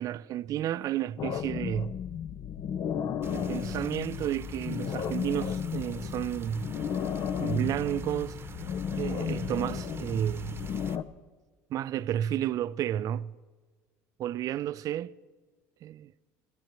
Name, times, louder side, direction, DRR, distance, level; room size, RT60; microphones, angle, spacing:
voice 1, 0.0-1.9 3.3-6.7 7.4-8.4 8.9-10.7 11.7-13.3 14.2-15.1 15.8-16.1, right 11 dB, 55° right, 0.5 m, -31 dB
sound 1, 1.2-11.0, left 8 dB, 50° left, 0.7 m, -34 dB
sound 2, 3.2-11.0, right 5 dB, 30° right, 0.9 m, -46 dB
14.0 x 10.5 x 7.5 m
supercardioid pair, 85°, 7 cm